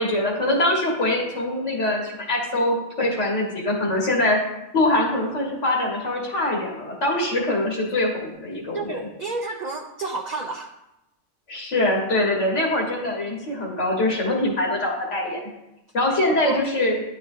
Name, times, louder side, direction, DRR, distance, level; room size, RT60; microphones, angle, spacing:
voice 1, 0.0-4.4 4.7-9.1 11.5-15.4 15.9-17.0, left 1 dB, 80° left, -2 dB, 1.9 m, -23 dB
voice 2, 8.7-10.7 16.2-16.7, right 3 dB, 60° right, 3 dB, 0.4 m, -30 dB
10.0 x 4.8 x 2.6 m, 0.91 s
omnidirectional pair, 1.2 m